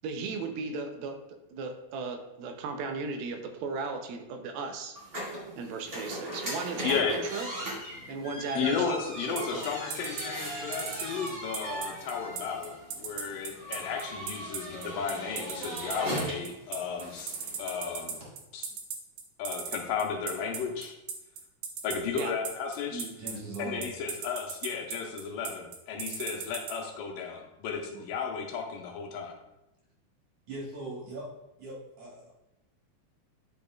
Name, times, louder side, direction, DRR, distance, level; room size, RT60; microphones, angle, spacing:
voice 1, 0.0-1.2 1.5-5.0 5.6-7.5 8.1-9.0 9.3-9.7 22.2-22.3 22.9-23.1, right 4 dB, 85° right, 5 dB, 2.6 m, -36 dB
sound 1, 5.0-18.3, right 1 dB, 30° right, 1.9 m, -39 dB
voice 2, 6.8-7.2 8.6-18.2 18.5-18.7 19.4-20.9 21.8-23.1 23.6-29.3, left 6 dB, 80° left, 2 dB, 2.3 m, -34 dB
sound 2, 9.4-26.7, right 7 dB, 70° right, 1.8 m, -36 dB
voice 3, 23.2-23.9 27.9-28.0 30.5-31.3 31.6-32.3, right 2 dB, 55° right, -5 dB, 2.0 m, -40 dB
10.5 x 5.3 x 2.3 m, 0.93 s
omnidirectional pair, 4.1 m